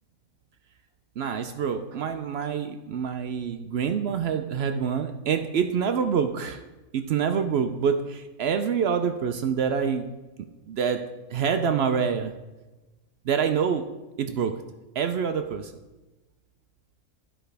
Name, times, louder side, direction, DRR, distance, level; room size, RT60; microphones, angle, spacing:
voice 1, 1.2-6.6 6.9-10.1 10.7-11.0 11.3-12.4 13.3-13.8 14.2-14.5 15.0-15.7, right 7 dB, 65° right, 7 dB, 0.6 m, -26 dB
12.5 x 4.9 x 3.3 m, 1.1 s
omnidirectional pair, 1.5 m